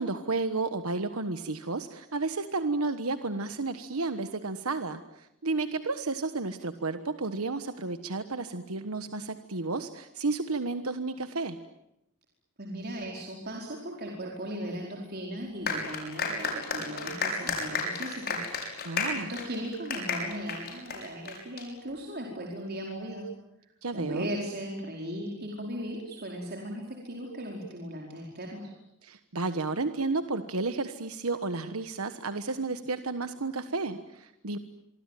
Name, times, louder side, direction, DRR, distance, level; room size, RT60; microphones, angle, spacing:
voice 1, 0.0-11.6 18.8-19.3 23.8-24.3 29.0-34.6, right 3 dB, 80° right, 10 dB, 1.3 m, -32 dB
voice 2, 12.6-18.4 19.1-23.3 23.9-28.7, equal, 45° right, -1 dB, 4.7 m, -37 dB
sound 1, 15.7-21.6, left 4 dB, 45° left, 6.6 m, -32 dB
25.5 x 24.5 x 9.2 m, 0.84 s
head